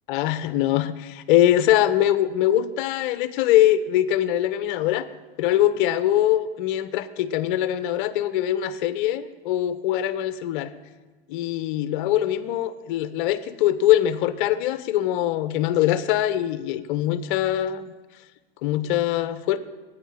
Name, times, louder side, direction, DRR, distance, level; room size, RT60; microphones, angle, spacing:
voice 1, 0.1-5.1 5.4-10.7 11.3-17.9 18.6-19.6, left 12 dB, 55° left, 13 dB, 1.0 m, -22 dB
22.5 x 9.6 x 4.2 m, 1.3 s
hypercardioid pair, 110°, 32 cm